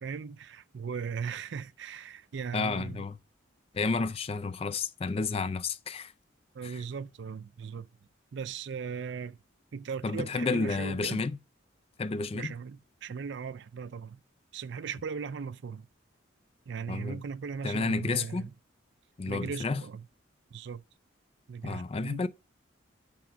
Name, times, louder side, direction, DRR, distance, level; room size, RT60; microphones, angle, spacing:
voice 1, 0.0-3.1 6.5-7.9 8.3-9.4 9.7-11.2 12.3-14.2 14.5-15.9 16.7-18.5 19.3-20.1 20.5-20.8 21.5-22.3, right 6 dB, 60° right, 0.4 m, -38 dB
voice 2, 2.5-3.2 3.7-6.1 6.6-6.8 10.0-11.4 12.0-12.5 16.9-17.2 17.6-18.5 19.2-19.8 21.6-22.3, left 4 dB, 30° left, 0.3 m, -31 dB
6.2 x 5.9 x 6.1 m
head